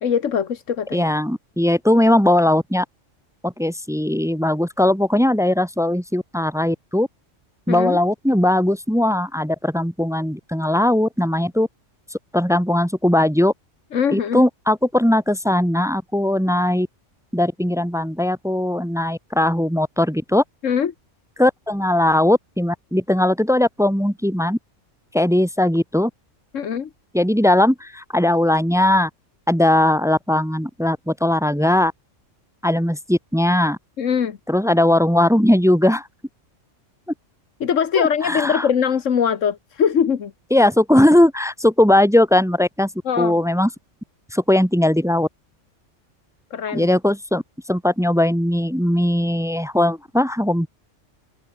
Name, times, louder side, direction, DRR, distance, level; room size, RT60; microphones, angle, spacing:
voice 1, 0.0-1.1 7.7-8.0 13.9-14.4 20.6-20.9 26.5-26.9 34.0-34.4 37.6-40.3 43.0-43.3 46.5-46.9, left 7 dB, 85° left, 1.6 m, -21 dB
voice 2, 0.9-2.8 3.4-7.1 7.7-11.7 12.3-13.5 14.1-16.9 17.3-20.4 21.4-24.6 25.1-26.1 27.1-29.1 29.5-31.9 32.6-33.8 34.5-36.0 38.0-38.7 40.5-42.9 43.2-43.7 44.3-45.3 46.7-47.4 47.7-50.7, left 1 dB, 5° right, 0.6 m, -19 dB
open air
omnidirectional pair, 1.3 m